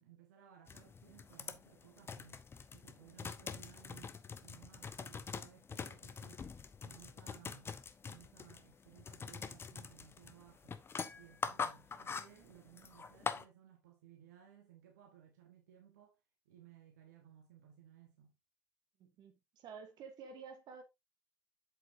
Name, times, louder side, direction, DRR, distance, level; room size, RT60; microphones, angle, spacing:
voice 1, 0.0-6.5 6.8-7.7 8.0-10.8 11.1-16.2 16.4-18.4, right 10 dB, 70° right, 1.4 m, -61 dB
sound 1, 0.7-13.4, left 5 dB, 25° left, 0.9 m, -45 dB
voice 2, 19.0-20.8, right 5 dB, 50° right, 2.0 m, -51 dB
8.0 x 6.5 x 2.7 m
figure-of-eight pair, 65°, 9 cm